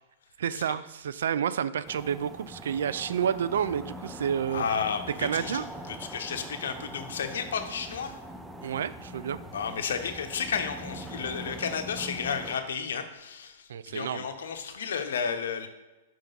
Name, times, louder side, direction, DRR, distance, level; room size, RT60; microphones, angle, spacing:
voice 1, 0.4-4.6 5.2-5.6 8.6-9.4 13.7-14.3, right 8 dB, 80° right, 16 dB, 0.3 m, -30 dB
sound 1, 1.8-12.6, right 1 dB, 5° right, 0.4 m, -42 dB
voice 2, 4.5-8.2 9.5-15.7, left 6 dB, 80° left, 7 dB, 0.9 m, -32 dB
5.7 x 3.7 x 5.3 m, 1.1 s
hypercardioid pair, 140°, 0 cm